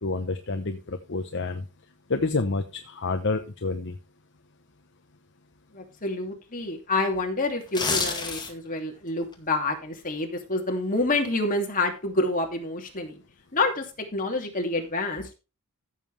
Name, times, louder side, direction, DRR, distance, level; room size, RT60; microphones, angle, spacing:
voice 1, 0.0-1.6 2.1-4.0, left 3 dB, 55° left, 7 dB, 1.0 m, -28 dB
voice 2, 5.7-13.2 13.5-13.8 14.1-15.3, left 2 dB, 40° left, 3 dB, 2.7 m, -28 dB
sound 1, 7.6-8.8 9.2-9.3, left 4 dB, 20° left, 2.2 m, -28 dB
14.5 x 7.4 x 3.4 m, 0.31 s
head